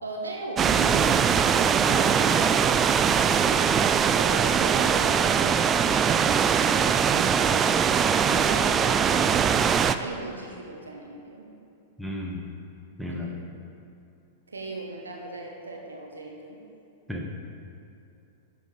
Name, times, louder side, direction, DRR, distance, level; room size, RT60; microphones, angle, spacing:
voice 1, 0.0-2.8 4.1-9.7 10.0-11.4 13.1-13.4 14.5-16.6, right 2 dB, 80° right, 0 dB, 1.3 m, -38 dB
sound 1, 0.6-10.0, right 7 dB, 25° right, 0.3 m, -21 dB
voice 2, 12.0-12.4 13.0-13.3 17.1-17.3, left 1 dB, ahead, -1 dB, 1.3 m, -33 dB
11.0 x 5.4 x 5.0 m, 2.6 s
figure-of-eight pair, 95°, 0 cm